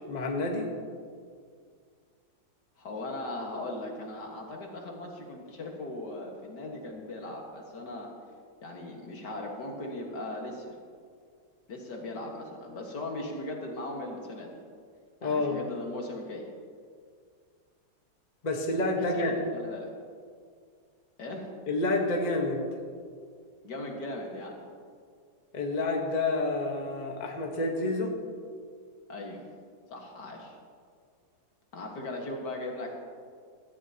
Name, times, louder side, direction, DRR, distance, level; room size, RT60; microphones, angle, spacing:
voice 1, 0.1-0.7 15.2-15.6 18.4-19.3 21.7-22.6 25.5-28.1, left 2 dB, 25° left, 1 dB, 1.2 m, -29 dB
voice 2, 2.8-8.1 8.6-10.8 11.7-14.6 15.2-16.5 19.0-19.9 21.2-21.5 23.6-24.6 29.1-29.4 29.9-30.6 31.7-32.9, left 2 dB, 65° left, 0 dB, 2.2 m, -38 dB
16.5 x 14.0 x 2.9 m, 2.1 s
omnidirectional pair, 2.0 m